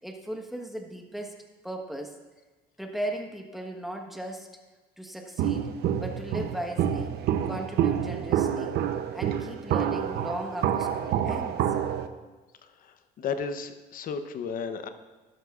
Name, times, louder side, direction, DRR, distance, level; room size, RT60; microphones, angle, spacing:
voice 1, 0.0-2.2 2.8-4.5 5.0-5.7 6.0-8.8 9.1-11.7, right 1 dB, ahead, 2 dB, 1.3 m, -37 dB
Walk footsteps, 5.4-12.1, right 9 dB, 75° right, 0.7 m, -28 dB
voice 2, 12.8-14.9, left 6 dB, 55° left, 9 dB, 0.9 m, -34 dB
12.5 x 12.0 x 2.5 m, 1.2 s
cardioid pair, 110°, 17 cm